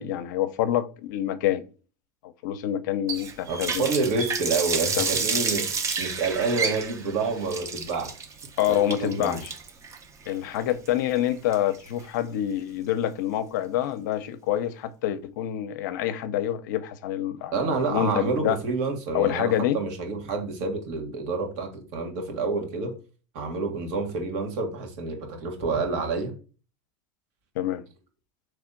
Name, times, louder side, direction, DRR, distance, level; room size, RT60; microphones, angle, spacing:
voice 1, 0.0-1.6 2.4-3.9 5.0-5.1 8.6-9.5 10.3-18.6 19.1-19.8 27.6-27.8, left 11 dB, 75° left, 0.6 m, -27 dB
Water tap faucet, 3.1-12.0, right 5 dB, 30° right, 0.8 m, -30 dB
voice 2, 3.5-8.1 8.7-9.4 17.5-23.0 23.3-26.3, right 4 dB, 65° right, 1.6 m, -28 dB
4.2 x 3.2 x 3.7 m
supercardioid pair, 115°, 10 cm